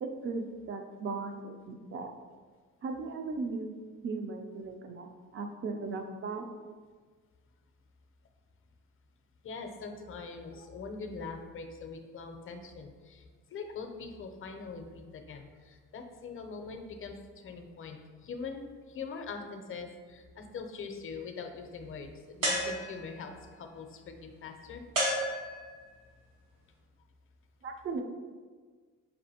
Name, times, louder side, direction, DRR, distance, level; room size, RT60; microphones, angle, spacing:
voice 1, 0.0-2.1 2.8-3.7 4.0-6.5 27.6-28.0, right 4 dB, 45° right, 5 dB, 0.5 m, -37 dB
voice 2, 9.4-13.2 13.5-17.1 17.4-24.8, left 4 dB, 45° left, 5 dB, 0.5 m, -43 dB
sound 1, 22.4-23.3 24.9-25.9, right 1 dB, 80° right, 1.2 m, -31 dB
5.3 x 2.5 x 2.8 m, 1.5 s
cardioid pair, 90°, 30 cm